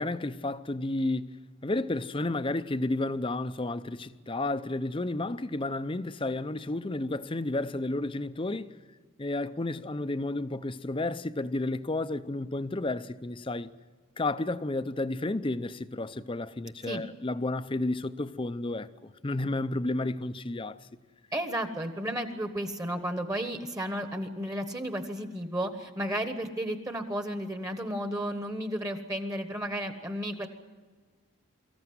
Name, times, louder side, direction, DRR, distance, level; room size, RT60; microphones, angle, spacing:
voice 1, 0.0-1.3 1.6-8.8 9.2-13.7 14.2-20.8, left 2 dB, 25° left, 0.6 m, -31 dB
voice 2, 21.3-30.5, equal, 15° right, 1.2 m, -33 dB
24.0 x 15.0 x 9.5 m
head